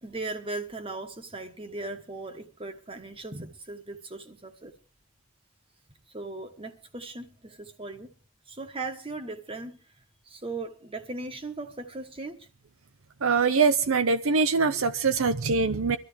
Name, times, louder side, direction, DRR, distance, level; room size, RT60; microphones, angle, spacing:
voice 1, 0.0-4.7 6.1-8.1 8.5-9.8 10.3-12.5, right 2 dB, 25° right, 1.3 m, -38 dB
voice 2, 13.2-16.0, right 4 dB, 75° right, 0.7 m, -23 dB
23.0 x 13.0 x 3.4 m
head